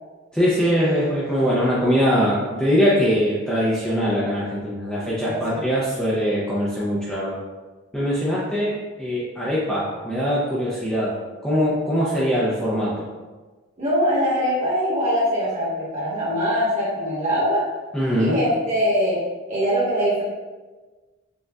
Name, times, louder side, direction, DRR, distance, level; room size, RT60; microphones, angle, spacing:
voice 1, 0.3-7.4 7.9-11.1 11.4-13.1 17.9-18.4, equal, 5° left, -8 dB, 0.5 m, -22 dB
voice 2, 5.2-5.6 13.8-17.6 18.2-19.2 19.5-20.2, equal, 35° right, -8 dB, 1.3 m, -22 dB
6.4 x 2.4 x 2.3 m, 1.3 s
head